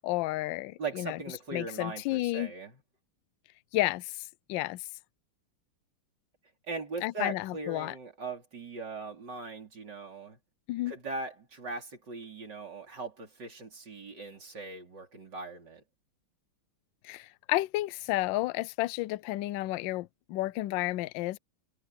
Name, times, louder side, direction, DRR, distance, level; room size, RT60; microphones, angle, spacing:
voice 1, 0.0-1.2 1.5-2.5 3.7-4.2 4.5-4.8 7.0-7.9 10.7-10.9 17.0-21.4, left 18 dB, 75° left, 1.2 m, -31 dB
voice 2, 0.8-2.8 6.7-10.4 10.9-15.8, right 3 dB, 55° right, 4.6 m, -40 dB
omnidirectional pair, 2.3 m